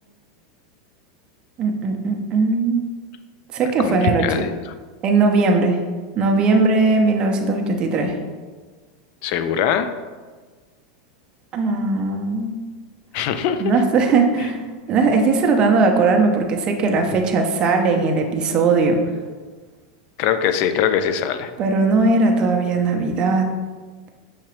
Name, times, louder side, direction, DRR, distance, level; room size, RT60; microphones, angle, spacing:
voice 1, 1.6-2.8 3.5-4.2 5.0-5.8 6.2-8.2 11.5-12.5 13.6-14.6 14.9-19.0 21.6-23.5, right 3 dB, 30° right, 2 dB, 0.6 m, -18 dB
voice 2, 3.8-4.5 9.2-9.9 13.1-13.8 20.2-21.5, left 8 dB, 50° left, 10 dB, 0.4 m, -22 dB
5.7 x 2.9 x 3.1 m, 1.4 s
supercardioid pair, 130°, 3 cm